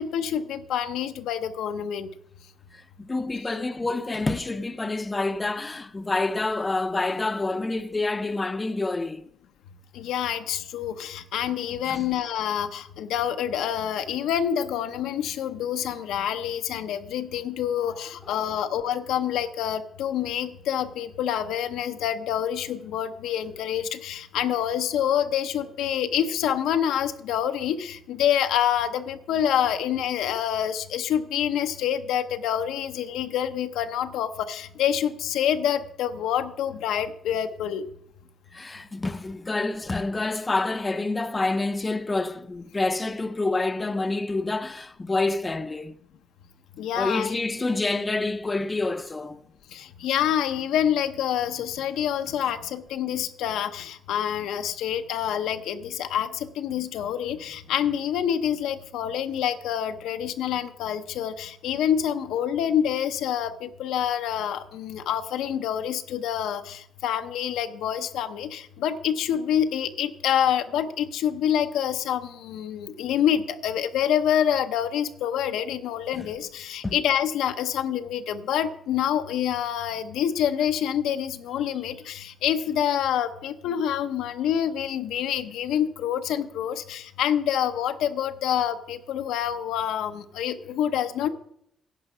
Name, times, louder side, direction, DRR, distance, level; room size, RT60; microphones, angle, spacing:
voice 1, 0.0-2.1 9.9-37.8 46.8-47.4 49.7-91.3, left 9 dB, 85° left, 0.7 m, -27 dB
voice 2, 2.7-9.3 11.9-12.1 18.3-18.4 38.5-45.9 47.0-49.4 76.1-76.3 76.8-77.0, left 3 dB, 25° left, 0.6 m, -28 dB
11.0 x 7.8 x 5.5 m
cardioid pair, 90°, 0 cm